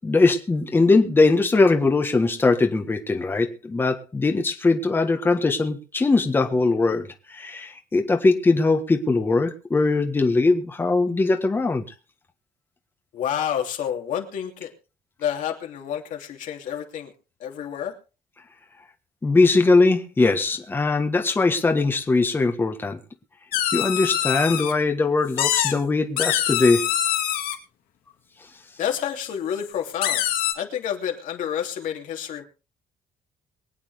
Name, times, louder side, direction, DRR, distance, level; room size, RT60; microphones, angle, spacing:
voice 1, 0.0-11.8 19.2-23.0 23.7-26.9, left 3 dB, 15° left, 5 dB, 1.4 m, -21 dB
voice 2, 13.1-14.7 15.2-17.1 17.4-17.9 28.8-30.3 30.5-32.4, left 9 dB, 60° left, 2 dB, 2.9 m, -29 dB
sound 1, 23.5-24.7 25.4-25.7 26.2-27.5 29.6-29.7 30.0-30.5, left 11 dB, 85° left, 2.4 m, -24 dB
24.0 x 8.7 x 3.5 m, 0.33 s
cardioid pair, 170°, 15 cm